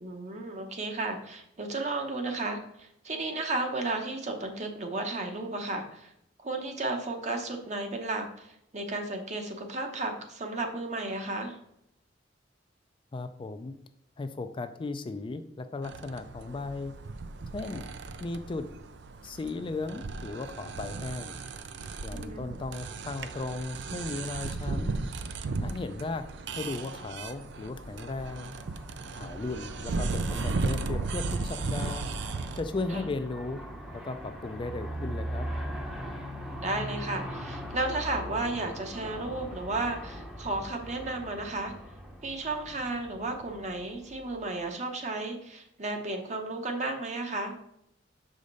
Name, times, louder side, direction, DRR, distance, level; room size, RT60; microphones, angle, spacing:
voice 1, 0.0-6.1 6.4-11.6 22.1-22.4 32.9-33.0 36.6-41.7 42.2-47.6, right 2 dB, 40° right, 4 dB, 1.0 m, -33 dB
voice 2, 13.1-13.7 14.2-16.9 17.5-17.8 18.2-18.7 19.2-21.3 22.0-25.0 25.6-26.3 26.6-28.5 29.1-32.1 32.5-33.6 33.9-35.5, left 3 dB, 25° left, 9 dB, 0.3 m, -36 dB
sound 1, 15.8-32.6, right 3 dB, 65° right, 0.5 m, -36 dB
Aircraft, 27.4-44.7, equal, 5° right, 0.8 m, -41 dB
6.4 x 5.0 x 4.0 m, 0.78 s
head